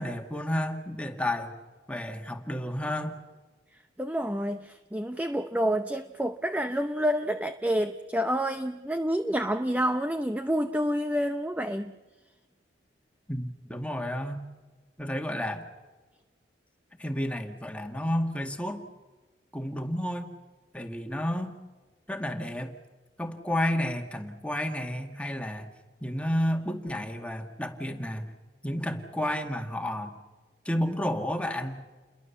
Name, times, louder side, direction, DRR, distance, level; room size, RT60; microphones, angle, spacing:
voice 1, 0.0-1.6 1.9-3.2 13.3-14.4 15.0-15.7 17.0-18.8 19.5-20.3 20.7-21.6 22.1-22.7 23.2-25.7 26.0-28.3 28.6-30.2 30.7-31.9, left 1 dB, 5° left, 4 dB, 2.0 m, -31 dB
voice 2, 4.0-11.9, equal, 10° right, 8 dB, 0.7 m, -28 dB
29.5 x 22.0 x 7.1 m, 1.3 s
head